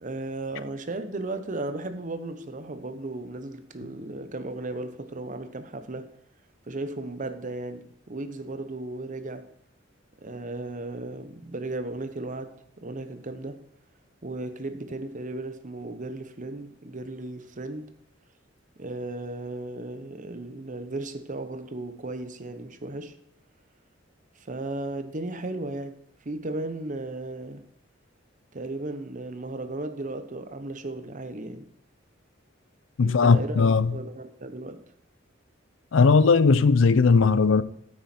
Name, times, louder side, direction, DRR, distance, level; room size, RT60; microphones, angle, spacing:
voice 1, 0.0-6.1 6.7-9.5 10.2-13.6 14.2-17.9 18.8-23.2 24.4-27.7 28.5-31.7 33.0-33.6 33.9-34.9, right 2 dB, 40° right, 0.9 m, -35 dB
voice 2, 33.0-33.9 35.9-37.6, left 4 dB, 75° left, 0.5 m, -18 dB
9.3 x 9.1 x 4.4 m
head